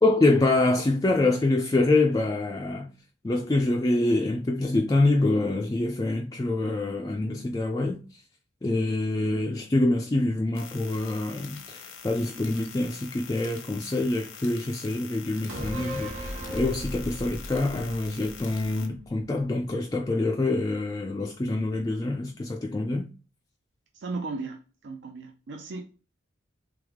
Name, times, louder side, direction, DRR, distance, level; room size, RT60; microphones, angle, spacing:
voice 1, 0.0-2.9 3.2-8.2 8.6-23.1, left 2 dB, 20° left, 0.3 m, -25 dB
sound 1, 10.5-18.9, left 6 dB, 85° left, 0.8 m, -45 dB
sound 2, 15.5-19.1 19.4-19.5, equal, 90° right, 1.4 m, -36 dB
voice 2, 23.9-25.8, right 3 dB, 55° right, 0.4 m, -36 dB
3.4 x 3.4 x 3.5 m
head